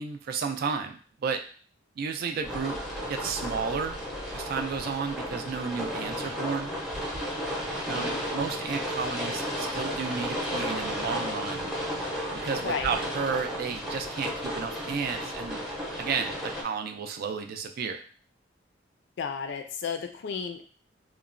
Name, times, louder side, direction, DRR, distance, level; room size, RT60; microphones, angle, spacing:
voice 1, 0.0-1.4 2.0-2.8 3.1-4.0 4.3-6.7 7.9-8.1 8.3-11.7 12.4-15.6 16.0-18.1, right 5 dB, 55° right, 5 dB, 0.3 m, -32 dB
sound 1, 2.4-16.6, equal, ahead, 0.6 m, -33 dB
voice 2, 7.9-8.2 12.6-12.9 19.2-20.6, left 6 dB, 65° left, 6 dB, 0.4 m, -33 dB
2.9 x 2.1 x 2.4 m, 0.42 s
head